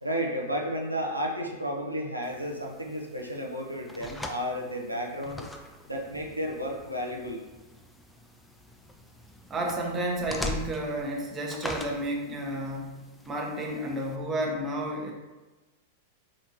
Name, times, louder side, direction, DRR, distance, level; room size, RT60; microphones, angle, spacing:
voice 1, 0.0-5.4 5.9-7.4, equal, 85° right, 0 dB, 0.4 m, -32 dB
sound 1, 2.2-14.2, left 2 dB, 5° left, 0.3 m, -42 dB
voice 2, 9.5-15.1, right 1 dB, 20° right, 0 dB, 0.7 m, -31 dB
4.3 x 2.9 x 2.7 m, 1.1 s
figure-of-eight pair, 95°, 0 cm